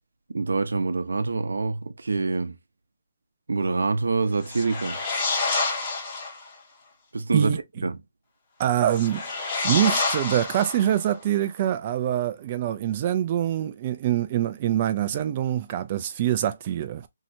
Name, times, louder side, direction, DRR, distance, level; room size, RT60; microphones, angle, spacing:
voice 1, 0.3-2.5 3.5-5.0 7.1-8.0, right 3 dB, 85° right, 0.7 m, -26 dB
sound 1, 4.4-6.5 8.8-11.2, left 3 dB, 25° left, 0.9 m, -28 dB
voice 2, 8.6-9.3 9.6-17.1, right 11 dB, 25° right, 0.3 m, -25 dB
3.1 x 2.8 x 2.6 m
hypercardioid pair, 165°, 0 cm